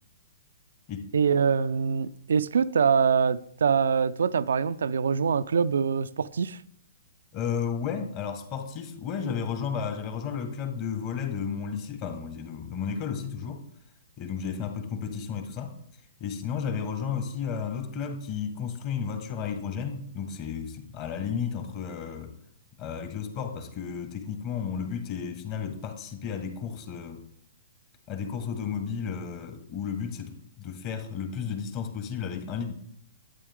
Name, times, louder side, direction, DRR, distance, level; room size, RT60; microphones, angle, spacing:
voice 1, 1.1-6.6, right 6 dB, 70° right, 0.4 m, -24 dB
voice 2, 7.3-13.6 14.2-15.7 16.2-22.3 22.8-27.2 28.1-32.7, left 7 dB, 35° left, 1.6 m, -33 dB
11.0 x 9.1 x 3.6 m
figure-of-eight pair, 120°, 0 cm